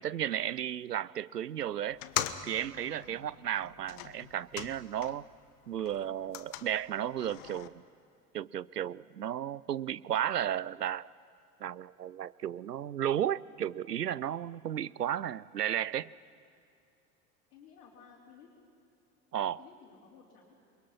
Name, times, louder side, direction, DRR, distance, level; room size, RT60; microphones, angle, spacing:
voice 1, 0.0-2.0 2.4-5.2 5.7-7.7 8.3-11.1 11.6-16.1 19.3-19.6, right 10 dB, 85° right, 20 dB, 0.5 m, -34 dB
sound 1, 1.9-5.4 5.7-7.7, left 12 dB, 45° left, 1.2 m, -41 dB
voice 2, 17.5-18.5 19.6-20.6, left 6 dB, 65° left, -5 dB, 4.0 m, -56 dB
28.5 x 22.0 x 5.8 m, 2.5 s
figure-of-eight pair, 70°, 46 cm